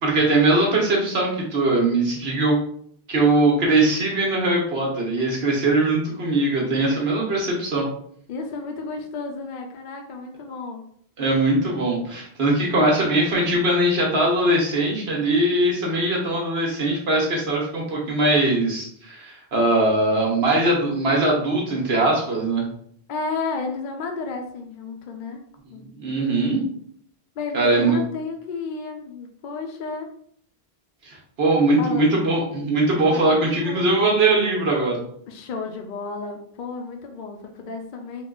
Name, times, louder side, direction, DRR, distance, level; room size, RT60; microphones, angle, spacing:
voice 1, 0.0-2.6 3.1-7.9 11.2-22.6 26.0-26.6 27.5-28.0 31.0-35.0, right 2 dB, 75° right, -1 dB, 1.3 m, -21 dB
voice 2, 8.3-10.8 23.1-25.4 25.7-25.9 27.4-30.1 31.8-32.1 33.1-33.9 35.3-38.3, left 4 dB, 60° left, 3 dB, 0.6 m, -32 dB
3.7 x 2.3 x 3.8 m, 0.64 s
omnidirectional pair, 1.1 m